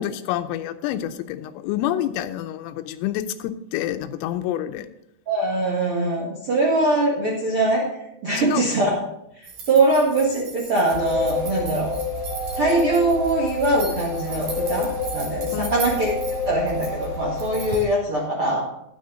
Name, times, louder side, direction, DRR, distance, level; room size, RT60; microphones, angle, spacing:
voice 1, 0.0-4.9 8.4-8.6 15.5-16.0, left 12 dB, 85° left, 10 dB, 3.3 m, -28 dB
voice 2, 5.3-7.9 8.2-9.0 9.3-11.9 12.5-18.6, right 2 dB, 80° right, -3 dB, 1.2 m, -22 dB
sound 1, 9.4-17.9, right 4 dB, 50° right, 3.3 m, -38 dB
sound 2, 10.9-17.8, left 3 dB, 65° left, 3.8 m, -29 dB
12.5 x 9.4 x 3.9 m, 0.81 s
omnidirectional pair, 5.9 m